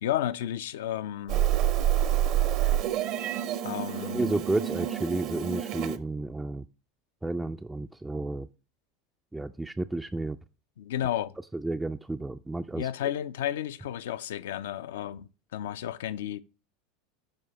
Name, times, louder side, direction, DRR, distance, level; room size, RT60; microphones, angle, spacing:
voice 1, 0.0-1.4 3.6-4.3 10.8-11.3 12.8-16.4, left 11 dB, 65° left, 0.4 m, -32 dB
Meow, 1.3-6.0, right 11 dB, 50° right, 0.7 m, -27 dB
voice 2, 4.1-6.6 7.2-8.5 9.3-10.4 11.5-12.9, right 2 dB, 10° right, 0.3 m, -31 dB
13.0 x 4.6 x 2.8 m
figure-of-eight pair, 80°, 0 cm